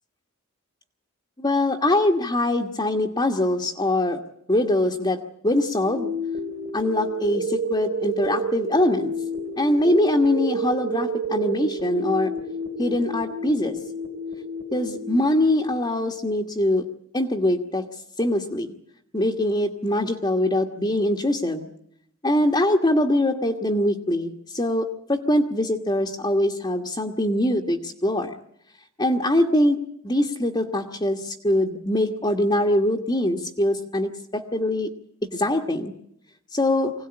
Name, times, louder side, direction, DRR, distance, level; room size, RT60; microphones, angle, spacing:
voice 1, 1.4-4.2 4.5-6.1 6.7-9.1 9.6-12.3 12.8-13.8 14.7-16.8 17.1-17.9 18.2-18.7 19.1-21.7 22.2-28.4 29.0-34.9 35.3-35.9 36.5-36.9, left 1 dB, 20° left, 2 dB, 1.5 m, -23 dB
sound 1, 5.8-15.8, right 1 dB, 50° right, 3.4 m, -30 dB
25.0 x 18.0 x 9.9 m, 0.74 s
head